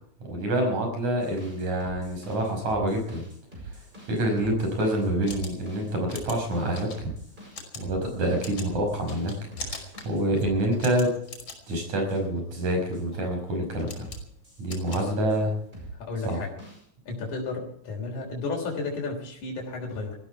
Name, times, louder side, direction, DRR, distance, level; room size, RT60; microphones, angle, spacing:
voice 1, 0.2-3.2 4.1-7.1 7.8-9.3 9.6-11.1 11.7-14.1 14.6-15.5 16.3-16.4, right 1 dB, 70° right, 3 dB, 7.2 m, -27 dB
sound 1, 1.2-11.3 11.7-12.2 12.5-13.0 14.0-15.4 15.7-16.8, right 2 dB, 15° right, 7.1 m, -45 dB
sound 2, 5.1-15.7, left 3 dB, 35° left, 5.9 m, -44 dB
voice 2, 16.0-16.5 17.1-20.2, left 3 dB, 80° left, 0 dB, 4.9 m, -33 dB
20.0 x 15.5 x 4.7 m, 0.66 s
omnidirectional pair, 3.4 m